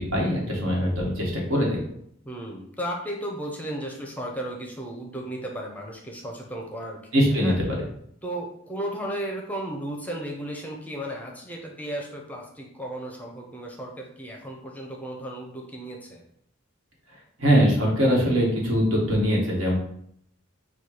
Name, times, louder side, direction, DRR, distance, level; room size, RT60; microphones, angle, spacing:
voice 1, 0.0-1.8 7.1-7.8 17.4-19.8, equal, 75° right, -2 dB, 1.4 m, -22 dB
voice 2, 2.2-7.0 7.3-7.6 8.2-16.2, right 1 dB, 10° left, 0 dB, 0.5 m, -34 dB
4.3 x 2.3 x 4.7 m, 0.69 s
head